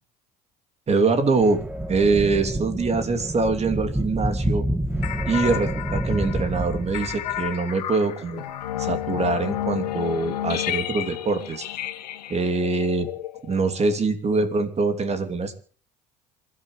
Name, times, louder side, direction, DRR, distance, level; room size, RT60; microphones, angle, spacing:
voice 1, 0.9-1.6 1.9-4.6 5.3-8.4 8.8-11.6 12.3-13.1 13.4-15.6, right 3 dB, 30° right, 9 dB, 3.0 m, -23 dB
sound 1, 1.4-7.5, right 1 dB, 5° right, 1.5 m, -28 dB
sound 2, 5.0-13.9, left 13 dB, 80° left, 1.5 m, -31 dB
27.5 x 12.5 x 3.3 m, 0.42 s
hypercardioid pair, 65°, 21 cm